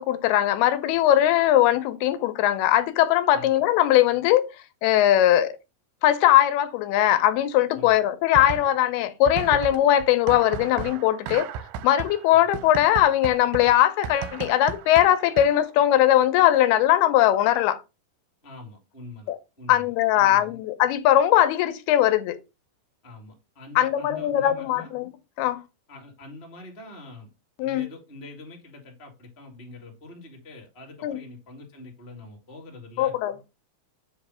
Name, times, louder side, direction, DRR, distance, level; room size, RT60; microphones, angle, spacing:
voice 1, 0.0-4.5 4.8-5.6 6.0-11.5 11.8-17.8 19.3-19.4 19.7-22.4 23.8-25.1 25.4-25.6 27.6-27.9 31.0-31.2 33.0-33.5, left 12 dB, 75° left, 2.7 m, -20 dB
sound 1, 8.3-8.9 9.3-15.7, right 8 dB, 85° right, 2.3 m, -35 dB
voice 2, 18.4-19.8 20.1-20.5 23.0-24.9 25.9-27.3 27.6-33.1, left 2 dB, 20° left, 1.6 m, -44 dB
7.7 x 3.3 x 6.1 m
omnidirectional pair, 4.8 m